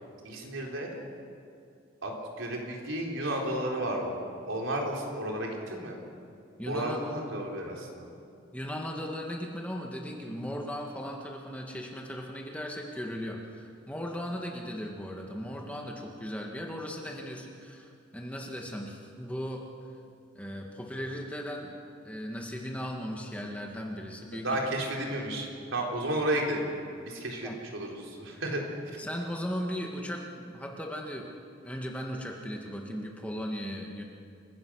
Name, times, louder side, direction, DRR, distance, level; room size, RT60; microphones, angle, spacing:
voice 1, 0.2-0.9 2.0-4.2 4.5-6.0 6.7-8.1 24.4-26.7 27.0-29.0, right 1 dB, 80° right, -1 dB, 4.0 m, -32 dB
voice 2, 6.6-7.4 7.7-7.8 8.5-19.6 20.3-21.7 22.0-24.5 27.4-27.5 29.0-31.4 31.6-34.0, equal, 5° left, 0 dB, 1.8 m, -37 dB
29.0 x 16.5 x 6.4 m, 2.5 s
head